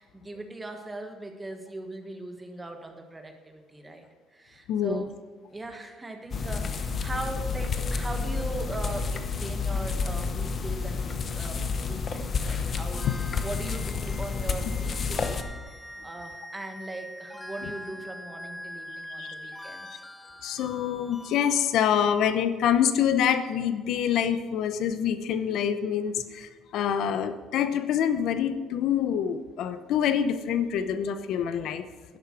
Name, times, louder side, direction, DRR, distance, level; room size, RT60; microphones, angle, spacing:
voice 1, 0.0-4.0 4.3-5.1 5.5-20.0, right 2 dB, 10° right, 5 dB, 1.4 m, -40 dB
voice 2, 4.7-5.0 19.2-19.3 20.4-31.9, left 8 dB, 60° left, 11 dB, 0.8 m, -26 dB
sound 1, 6.3-15.4, left 5 dB, 30° left, 0.9 m, -30 dB
sound 2, 12.9-21.7, left 1 dB, 10° left, 1.1 m, -43 dB
12.0 x 10.0 x 6.0 m, 1.5 s
cardioid pair, 160°, 0 cm